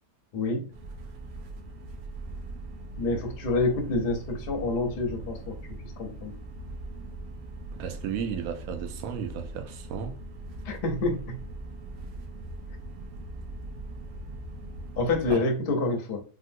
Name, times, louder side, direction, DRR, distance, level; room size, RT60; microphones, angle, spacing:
voice 1, 0.3-0.6 2.9-5.6 6.0-6.3 10.6-11.4 15.0-16.2, left 2 dB, 55° left, 0.6 m, -27 dB
sound 1, 0.7-15.3, right 2 dB, 90° right, 1.2 m, -40 dB
voice 2, 7.8-10.2 15.3-15.4, right 7 dB, 70° right, 0.8 m, -34 dB
3.6 x 2.2 x 2.6 m
omnidirectional pair, 1.8 m